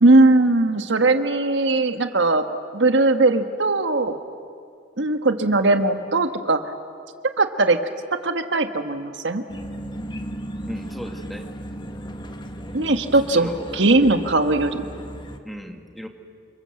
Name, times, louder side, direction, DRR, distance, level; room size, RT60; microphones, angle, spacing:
voice 1, 0.0-2.5 2.7-4.2 5.0-6.6 7.4-7.8 8.2-9.4 12.7-14.8, right 2 dB, 80° right, 8 dB, 1.5 m, -19 dB
sound 1, 9.5-15.4, equal, 25° left, 1.3 m, -35 dB
voice 2, 10.7-11.5 13.3-13.9 15.4-16.1, equal, ahead, 4 dB, 1.8 m, -36 dB
28.5 x 26.0 x 7.8 m, 2.3 s
head